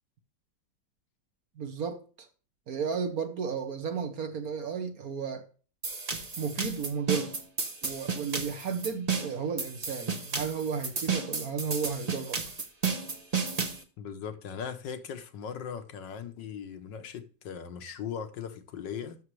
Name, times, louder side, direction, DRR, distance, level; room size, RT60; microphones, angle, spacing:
voice 1, 1.6-2.3 2.7-5.5 6.4-7.3 7.8-12.4, right 6 dB, 55° right, 1.5 m, -33 dB
sound 1, 5.8-13.8, right 5 dB, 30° right, 0.8 m, -33 dB
voice 2, 14.0-19.2, left 7 dB, 80° left, 1.6 m, -39 dB
12.5 x 6.6 x 3.2 m
omnidirectional pair, 1.9 m